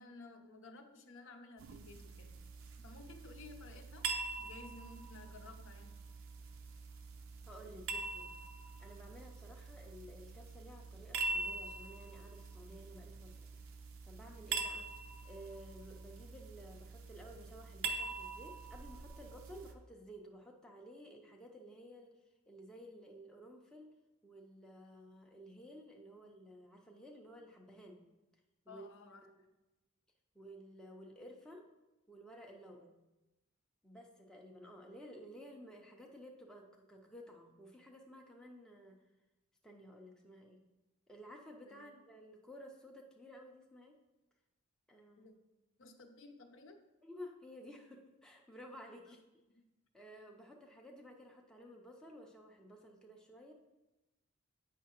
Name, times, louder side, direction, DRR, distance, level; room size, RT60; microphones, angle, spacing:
voice 1, 0.0-2.4 2.8-4.1 4.4-5.9 28.7-29.2 41.7-41.9 45.2-45.3 45.8-46.8 49.1-49.2, left 3 dB, 60° left, 5 dB, 0.6 m, -55 dB
sound 1, 1.6-19.7, right 4 dB, 65° right, 0.6 m, -44 dB
voice 2, 7.4-8.3 8.8-14.9 15.2-24.0 24.2-28.0 28.7-28.9 29.2-29.4 30.3-31.7 32.1-33.0 33.8-39.0 39.6-40.6 41.1-44.0 44.9-45.4 47.0-49.2 49.9-53.5, equal, 5° left, 0 dB, 0.5 m, -54 dB
8.2 x 5.5 x 2.9 m, 1.0 s
head